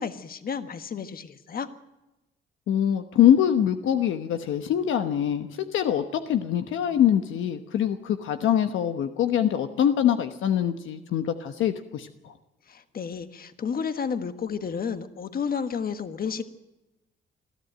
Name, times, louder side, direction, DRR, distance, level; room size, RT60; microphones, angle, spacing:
voice 1, 0.0-1.7 12.7-16.4, left 6 dB, 50° left, 9 dB, 1.5 m, -31 dB
voice 2, 2.7-12.3, left 10 dB, 80° left, 8 dB, 1.1 m, -24 dB
21.0 x 13.5 x 9.1 m, 1.0 s
cardioid pair, 90°, 20 cm